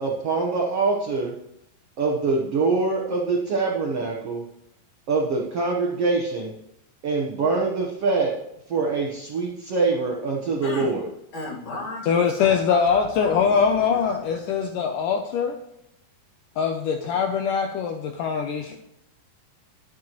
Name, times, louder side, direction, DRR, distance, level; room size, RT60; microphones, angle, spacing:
voice 1, 0.0-1.3 2.0-4.4 5.1-6.5 7.0-8.4 8.7-11.0, right 3 dB, 70° right, -1 dB, 1.4 m, -24 dB
voice 2, 10.6-11.0 11.3-14.6 17.1-17.2 18.7-18.8, left 2 dB, 50° left, -2 dB, 2.8 m, -35 dB
voice 3, 12.1-15.6 16.6-18.7, left 6 dB, 80° left, 5 dB, 2.0 m, -22 dB
11.5 x 9.3 x 3.0 m, 0.83 s
omnidirectional pair, 4.4 m